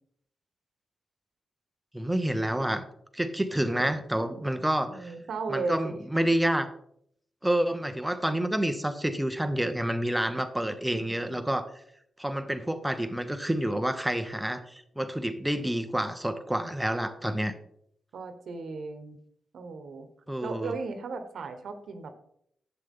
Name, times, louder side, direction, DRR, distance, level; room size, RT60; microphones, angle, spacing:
voice 1, 1.9-2.8 3.1-5.1 5.5-6.7 7.4-11.7 12.2-17.5 20.3-20.7, right 1 dB, 5° right, 9 dB, 0.9 m, -28 dB
voice 2, 3.7-4.5 4.8-5.8 10.9-11.5 18.1-19.2 19.5-20.1 20.4-22.1, right 4 dB, 70° right, 7 dB, 1.2 m, -37 dB
11.5 x 8.1 x 3.7 m, 0.70 s
wide cardioid pair, 130°, 0 cm